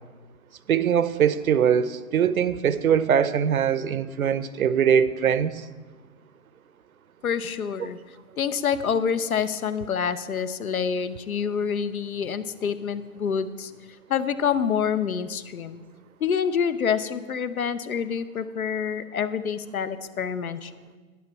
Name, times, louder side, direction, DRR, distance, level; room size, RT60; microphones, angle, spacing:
voice 1, 0.7-5.6, right 8 dB, 75° right, 16 dB, 0.7 m, -22 dB
voice 2, 7.2-8.0 8.4-13.7 14.1-15.8 16.2-20.7, left 7 dB, 75° left, 13 dB, 0.9 m, -27 dB
11.0 x 9.5 x 4.7 m, 1.4 s
hypercardioid pair, 175°, 43 cm